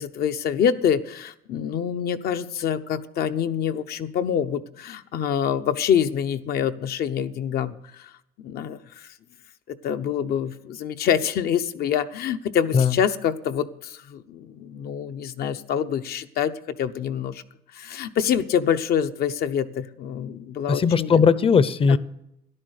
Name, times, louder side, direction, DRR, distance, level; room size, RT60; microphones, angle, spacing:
voice 1, 0.0-8.1 8.4-9.1 9.7-17.4 17.7-21.2 21.9-22.0, left 8 dB, 65° left, 9 dB, 0.9 m, -26 dB
voice 2, 20.7-22.0, left 6 dB, 35° left, 17 dB, 0.7 m, -18 dB
13.5 x 11.0 x 6.6 m, 0.80 s
cardioid pair, 110°, 17 cm